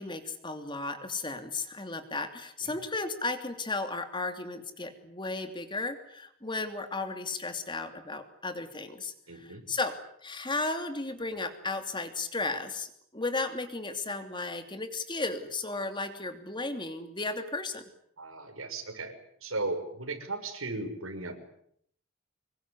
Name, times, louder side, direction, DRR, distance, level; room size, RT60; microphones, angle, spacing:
voice 1, 0.0-9.9 10.2-17.8, left 3 dB, 25° left, 8 dB, 2.9 m, -34 dB
voice 2, 9.3-9.6 18.2-19.1 19.4-21.4, right 2 dB, 90° right, 6 dB, 6.0 m, -36 dB
26.0 x 22.0 x 9.9 m, 0.69 s
head